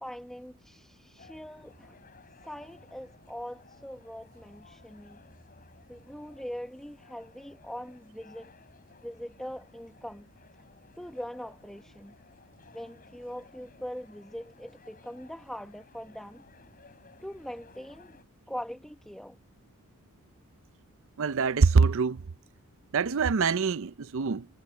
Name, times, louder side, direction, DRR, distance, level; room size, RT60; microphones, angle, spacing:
voice 1, 0.0-2.0 2.4-5.2 5.9-8.5 9.0-10.3 10.5-10.6 11.0-12.1 12.7-16.4 17.2-18.2 18.5-19.4, equal, ahead, 0.9 m, -42 dB
sound 1, 1.2-18.2, left 3 dB, 40° left, 5.8 m, -57 dB
voice 2, 21.2-22.2 22.9-24.5, right 5 dB, 60° right, 0.5 m, -24 dB
head